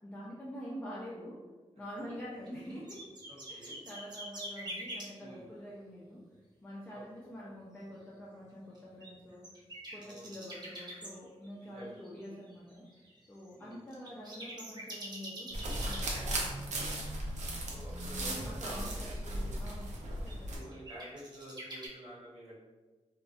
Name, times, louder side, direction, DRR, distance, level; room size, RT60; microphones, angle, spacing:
voice 1, 0.0-1.4 1.8-3.0 3.5-6.2 6.6-9.5 9.9-12.9 13.3-16.7 18.2-19.9 20.2-20.6, equal, 15° left, -7 dB, 0.4 m, -46 dB
sound 1, 2.2-5.1 8.7-11.1 11.4-16.1 16.9-17.0 18.7-19.2 20.3-21.9, right 1 dB, 35° right, 0.6 m, -45 dB
voice 2, 3.3-3.7 5.2-5.5 6.9-7.0 10.0-10.3 11.6-12.0 13.6-13.8 17.7-19.1 19.4-19.6 20.5-22.6, right 1 dB, 65° right, -6 dB, 0.9 m, -50 dB
sound 2, 15.5-20.6, right 1 dB, 85° right, 0.5 m, -36 dB
2.5 x 2.1 x 2.4 m, 1.3 s
wide cardioid pair, 100°, 12 cm